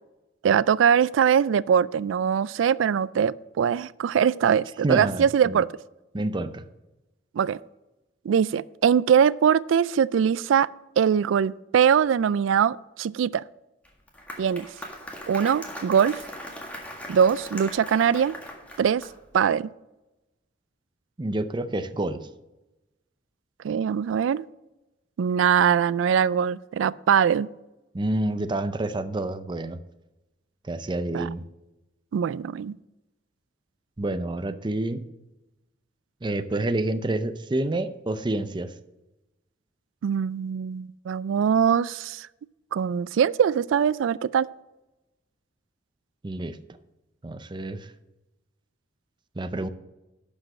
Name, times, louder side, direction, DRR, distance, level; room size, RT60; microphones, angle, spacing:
voice 1, 0.4-5.7 7.3-7.6 8.3-10.7 11.0-13.4 14.4-14.7 15.3-16.2 17.1-18.4 18.8-19.0 19.3-19.7 23.6-24.5 25.2-27.5 31.1-31.3 32.1-32.8 40.0-42.3 42.7-44.5, right 7 dB, 90° right, 0.3 m, -22 dB
voice 2, 4.8-5.6 6.1-6.7 21.2-22.3 27.9-29.8 30.6-31.4 34.0-35.0 36.2-38.7 46.2-46.6 47.2-47.9 49.4-49.7, right 2 dB, 25° right, 0.6 m, -28 dB
Applause, 13.8-19.3, equal, 10° left, 1.7 m, -40 dB
11.5 x 5.3 x 6.2 m
head